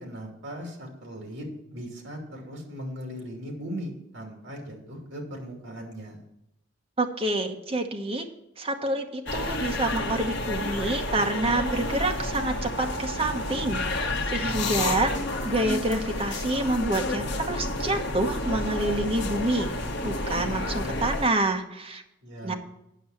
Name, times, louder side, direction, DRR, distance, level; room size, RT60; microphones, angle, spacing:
voice 1, 0.0-6.2 14.4-15.1 22.2-22.6, equal, 65° right, 1 dB, 2.7 m, -38 dB
voice 2, 7.0-8.3 8.6-15.1 15.4-19.7 20.0-22.0 22.4-22.5, right 2 dB, 30° right, 3 dB, 1.1 m, -27 dB
sound 1, 9.3-21.3, left 2 dB, 55° left, 1.0 m, -30 dB
9.5 x 6.1 x 7.1 m, 0.84 s
head